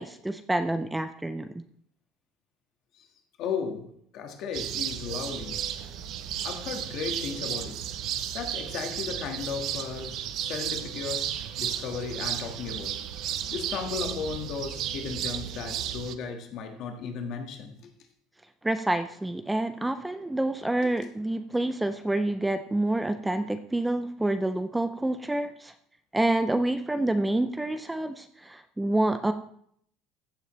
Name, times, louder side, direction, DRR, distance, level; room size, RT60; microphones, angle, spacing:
voice 1, 0.0-1.5 18.6-25.7 26.1-29.3, right 1 dB, 5° right, 9 dB, 0.3 m, -28 dB
voice 2, 3.4-5.6 6.4-7.8 8.3-13.0 13.2-17.9 20.8-21.1, left 6 dB, 45° left, 4 dB, 1.5 m, -35 dB
sound 1, 4.5-16.1, right 10 dB, 45° right, 0.6 m, -34 dB
15.0 x 6.8 x 3.1 m, 0.66 s
cardioid pair, 170°, 0 cm